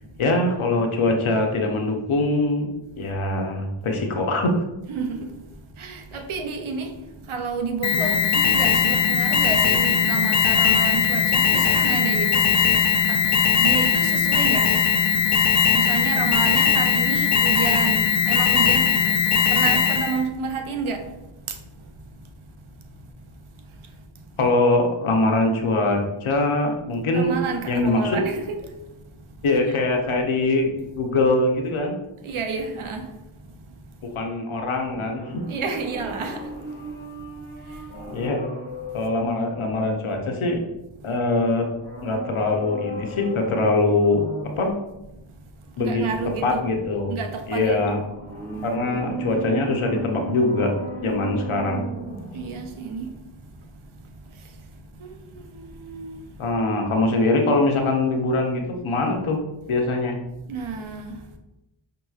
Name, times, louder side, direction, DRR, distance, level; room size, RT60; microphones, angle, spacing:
voice 1, 0.2-2.7 3.0-4.5 24.4-27.4 27.7-28.2 29.4-32.0 34.1-35.4 38.1-38.4 38.9-40.6 41.0-41.7 42.0-44.2 44.6-44.8 45.8-46.0 46.4-47.1 47.5-48.0 48.6-50.7 51.0-51.8 56.4-59.4 59.7-60.2, left 2 dB, 85° left, 0.7 m, -22 dB
voice 2, 4.9-12.7 13.1-15.1 15.7-21.9 22.2-22.3 23.2-24.3 27.1-28.8 29.2-29.3 32.2-33.7 35.5-37.1 37.4-38.2 39.0-39.1 41.0-41.1 45.3-46.6 47.1-47.8 48.9-49.4 52.3-54.7 54.9-56.3 60.5-61.4, right 5 dB, 85° right, 0.6 m, -31 dB
Alarm, 7.8-20.2, left 6 dB, 40° left, 0.4 m, -19 dB
sound 1, 34.9-40.7 41.7-44.7 47.5-52.7 53.0-53.1, right 1 dB, 25° right, 1.4 m, -35 dB
5.2 x 2.9 x 2.3 m
cardioid pair, 40°, 48 cm